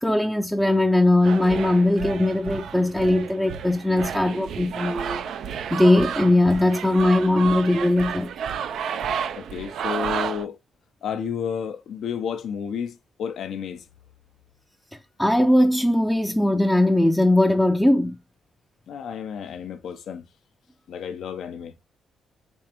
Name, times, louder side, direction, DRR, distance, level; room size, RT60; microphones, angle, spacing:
voice 1, 0.0-5.2 5.7-8.3 15.2-18.2, left 1 dB, 5° left, 0.5 m, -20 dB
sound 1, 1.2-10.5, right 7 dB, 70° right, 0.3 m, -31 dB
voice 2, 9.3-10.6 11.0-13.8 18.9-20.3 20.9-21.7, left 7 dB, 70° left, 0.6 m, -31 dB
3.5 x 3.3 x 2.9 m
hypercardioid pair, 45°, 0 cm